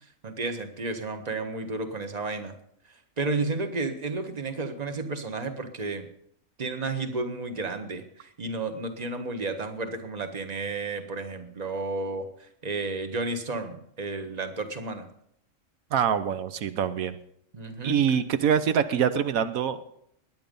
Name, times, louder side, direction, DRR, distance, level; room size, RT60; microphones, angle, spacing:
voice 1, 0.2-2.5 3.2-6.1 6.6-15.1 17.5-18.2, right 3 dB, 30° right, 7 dB, 1.4 m, -32 dB
voice 2, 15.9-17.2 17.8-19.8, right 8 dB, 85° right, 11 dB, 1.2 m, -24 dB
20.5 x 9.4 x 5.3 m, 0.72 s
omnidirectional pair, 1.4 m